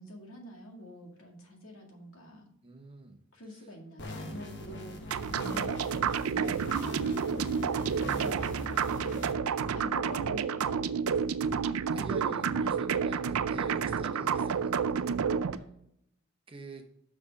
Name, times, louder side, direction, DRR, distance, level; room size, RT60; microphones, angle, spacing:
voice 1, 0.0-2.5 3.3-6.3 7.0-7.8 8.9-11.3 12.3-12.6 15.4-15.7, left 1 dB, 75° left, 0 dB, 2.1 m, -47 dB
voice 2, 2.6-3.2 11.9-15.1 16.5-16.8, right 2 dB, 25° right, 4 dB, 1.0 m, -45 dB
sound 1, 4.0-9.3, left 1 dB, 55° left, 1.1 m, -41 dB
sound 2, 5.1-15.6, right 6 dB, 85° right, 0.4 m, -30 dB
6.2 x 6.1 x 5.2 m, 0.74 s
head